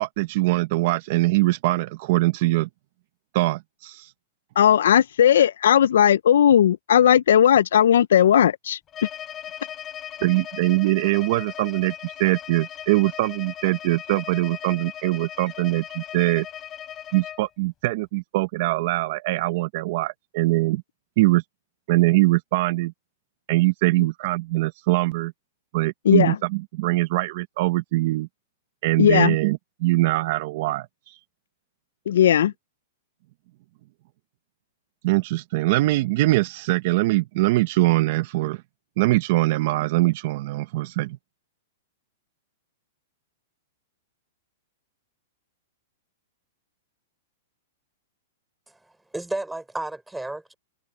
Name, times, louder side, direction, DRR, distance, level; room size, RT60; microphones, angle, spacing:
voice 1, 0.0-2.7 3.3-4.1 10.2-16.5 17.1-20.8 21.2-21.4 21.9-22.9 23.5-25.3 25.7-28.3 28.8-31.2 35.0-38.6 39.0-41.2, right 19 dB, 45° right, 0.7 m, -22 dB
voice 2, 4.6-8.8 26.1-26.4 29.0-29.3 32.1-32.5, left 10 dB, 80° left, 0.3 m, -17 dB
Bowed string instrument, 8.9-17.5, left 10 dB, 20° left, 7.4 m, -38 dB
voice 3, 49.1-50.5, right 2 dB, 5° right, 4.8 m, -32 dB
hypercardioid pair, 155°, 0 cm